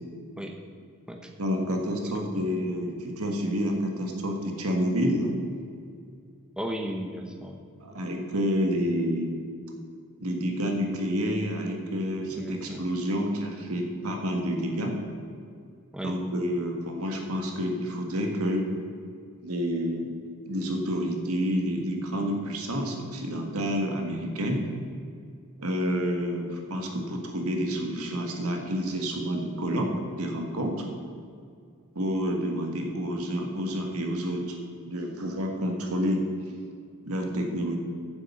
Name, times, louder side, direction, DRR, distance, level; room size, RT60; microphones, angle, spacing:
voice 1, 1.4-5.3 7.8-9.3 10.2-15.0 16.0-18.6 19.4-20.1 20.5-24.6 25.6-30.9 32.0-34.6 34.8-36.2 37.0-37.8, equal, 85° right, 2 dB, 1.6 m, -29 dB
voice 2, 2.0-2.5 6.6-7.6 12.3-12.9 15.9-16.1, equal, 5° right, 3 dB, 0.9 m, -36 dB
9.0 x 7.4 x 7.1 m, 2.3 s
head